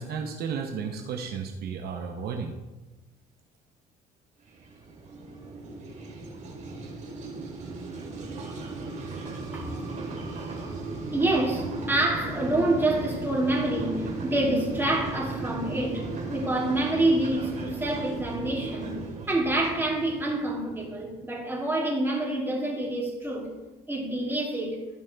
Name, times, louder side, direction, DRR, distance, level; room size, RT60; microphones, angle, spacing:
voice 1, 0.0-2.6, right 6 dB, 65° right, 3 dB, 0.9 m, -33 dB
sound 1, 4.4-21.1, right 3 dB, 45° right, 2.4 m, -36 dB
voice 2, 11.1-19.0 19.3-23.5 23.9-24.8, right 1 dB, 15° right, -4 dB, 2.9 m, -27 dB
15.0 x 5.3 x 3.4 m, 1.1 s
cardioid pair, 110°, 17 cm